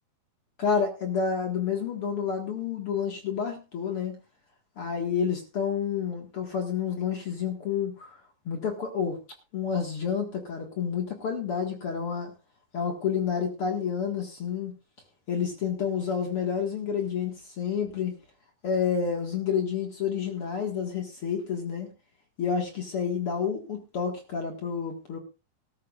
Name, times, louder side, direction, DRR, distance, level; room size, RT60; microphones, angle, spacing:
voice 1, 0.6-4.2 4.8-8.2 8.5-9.2 9.5-12.3 12.7-14.8 15.3-18.2 18.6-21.9 22.4-25.2, left 7 dB, 45° left, 3 dB, 2.1 m, -29 dB
18.5 x 13.0 x 2.5 m, 0.29 s
omnidirectional pair, 4.5 m